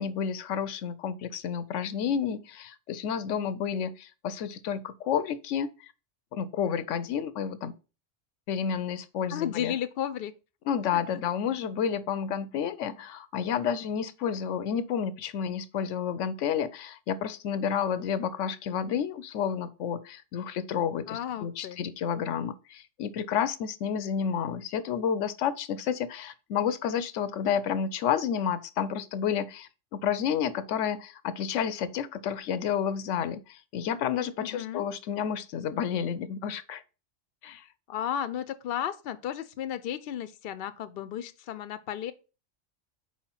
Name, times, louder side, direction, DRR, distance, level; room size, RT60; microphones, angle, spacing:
voice 1, 0.0-5.9 6.3-7.7 8.5-9.7 10.7-36.8 37.4-37.6, left 8 dB, 85° left, 0.9 m, -30 dB
voice 2, 9.3-10.3 10.9-11.0 21.1-21.8 34.4-34.9 37.9-42.1, left 10 dB, 60° left, 0.7 m, -34 dB
4.8 x 4.2 x 5.6 m
omnidirectional pair, 1.3 m